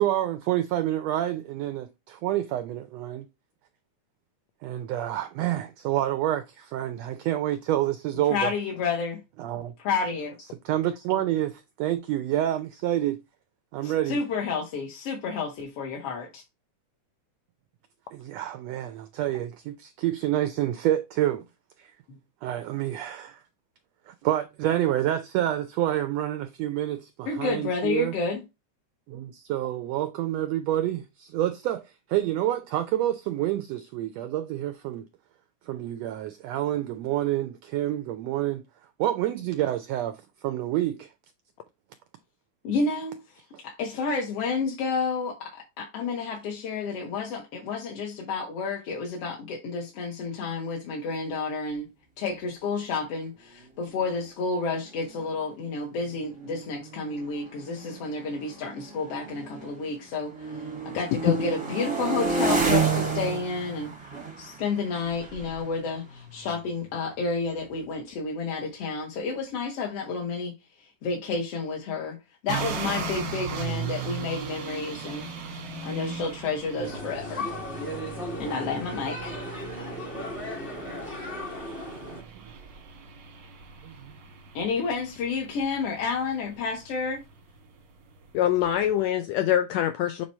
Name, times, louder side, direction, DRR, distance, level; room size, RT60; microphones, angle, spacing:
voice 1, 0.0-3.3 4.6-8.5 9.4-9.7 10.4-13.2 13.7-14.2 18.1-21.5 21.8-22.0 22.4-23.5 24.0-28.2 29.1-35.1 35.6-41.1 43.5-43.6 81.7-82.5 83.8-84.2, right 13 dB, 80° right, 1.5 m, -28 dB
voice 2, 8.3-9.2 9.9-10.4 13.8-16.4 22.1-22.2 27.3-28.4 42.6-43.2 43.6-51.9 52.2-63.9 64.4-72.2 72.4-75.3 75.8-77.5 78.4-79.4 84.5-87.2, left 4 dB, 60° left, 1.9 m, -30 dB
sound 1, 54.5-54.6 54.9-55.2 56.0-59.9 60.2-66.9, right 5 dB, 20° right, 0.7 m, -31 dB
sound 2, 72.5-89.0, right 6 dB, 60° right, 1.2 m, -38 dB
sound 3, 76.8-82.2, left 1 dB, 30° left, 1.1 m, -36 dB
voice 3, 88.3-90.3, left 11 dB, 80° left, 1.6 m, -24 dB
7.5 x 3.0 x 4.2 m
omnidirectional pair, 3.5 m